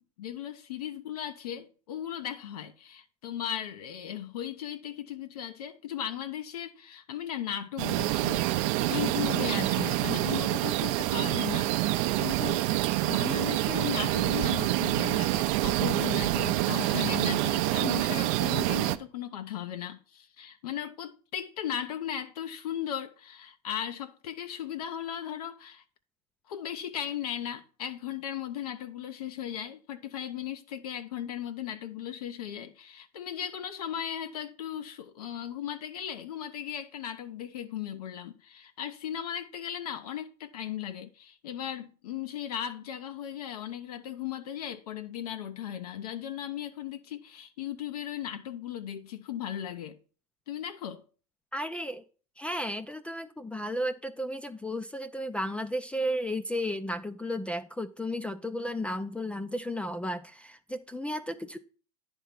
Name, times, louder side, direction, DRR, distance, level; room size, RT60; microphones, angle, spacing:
voice 1, 0.0-25.8 26.5-50.0 50.5-51.0, left 10 dB, 75° left, 0.6 m, -37 dB
sound 1, 7.8-19.0, right 16 dB, 55° right, 0.5 m, -27 dB
voice 2, 51.5-52.0 52.4-61.6, equal, 5° left, 0.4 m, -33 dB
9.8 x 3.6 x 5.8 m
hypercardioid pair, 100°, 20 cm